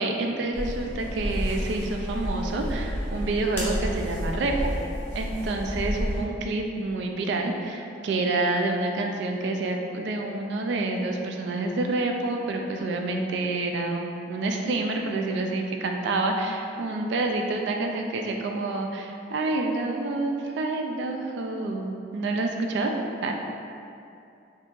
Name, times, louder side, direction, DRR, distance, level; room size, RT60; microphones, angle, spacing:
voice 1, 0.0-4.7 5.1-22.9 23.2-23.3, right 2 dB, 65° right, 3 dB, 0.3 m, -28 dB
sound 1, 0.5-6.2, equal, 10° left, 0.6 m, -31 dB
2.7 x 2.4 x 3.6 m, 2.6 s
head